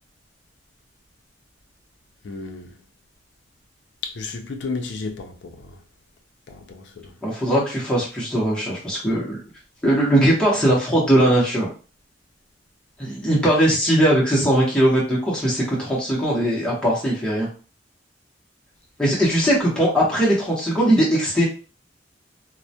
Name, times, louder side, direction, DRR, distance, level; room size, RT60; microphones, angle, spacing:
voice 1, 2.2-2.7 4.2-5.3 6.5-6.8, left 3 dB, 70° left, 0.4 m, -32 dB
voice 2, 7.2-9.4 9.8-11.7 13.0-17.5 19.0-21.5, right 1 dB, 5° left, 0.8 m, -20 dB
2.2 x 2.1 x 2.7 m
head